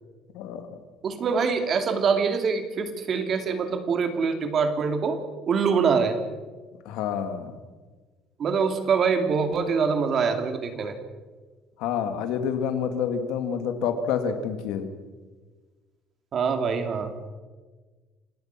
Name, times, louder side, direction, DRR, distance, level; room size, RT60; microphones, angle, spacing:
voice 1, 0.3-0.8 6.8-7.6 11.8-14.9, left 7 dB, 85° left, 7 dB, 2.5 m, -28 dB
voice 2, 1.0-5.2 5.5-6.2 8.4-10.9 16.3-17.1, right 5 dB, 40° right, 6 dB, 2.8 m, -24 dB
28.5 x 18.0 x 6.1 m, 1.3 s
cardioid pair, 135°, 0 cm